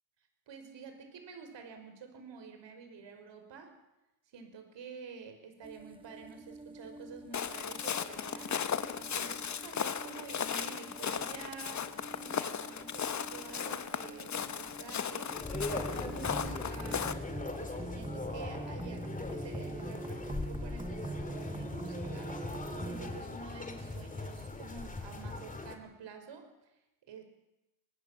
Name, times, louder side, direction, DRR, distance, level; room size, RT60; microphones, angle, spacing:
voice 1, 0.5-3.7 4.3-8.5 8.9-17.3 17.5-26.5 27.1-27.2, right 5 dB, 60° right, 6 dB, 5.7 m, -49 dB
sound 1, 5.6-23.2, right 3 dB, 10° right, 1.0 m, -45 dB
Walk footsteps, 7.3-17.1, left 7 dB, 35° left, 1.3 m, -36 dB
sound 2, 15.4-25.8, left 3 dB, 15° left, 3.0 m, -40 dB
24.0 x 20.5 x 7.5 m, 0.95 s
cardioid pair, 120°, 50 cm